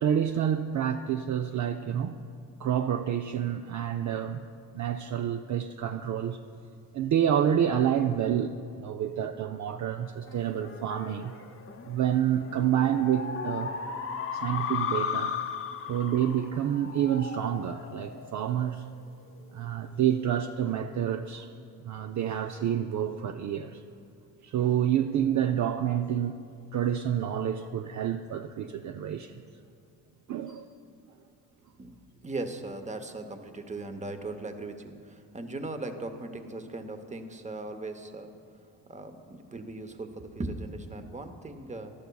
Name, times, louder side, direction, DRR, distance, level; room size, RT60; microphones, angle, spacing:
voice 1, 0.0-2.2 2.6-4.5 4.7-6.4 6.9-11.3 11.8-13.7 14.3-15.4 15.9-18.9 19.5-21.5 21.8-23.8 24.4-26.4 26.7-29.4 30.3-30.7, right 9 dB, 50° right, 7 dB, 0.5 m, -28 dB
sound 1, 10.3-19.1, left 7 dB, 35° left, 0.8 m, -36 dB
voice 2, 32.2-38.3 38.9-41.9, right 2 dB, 20° right, 7 dB, 0.9 m, -38 dB
15.0 x 11.5 x 2.3 m, 2.4 s
cardioid pair, 75°, 39 cm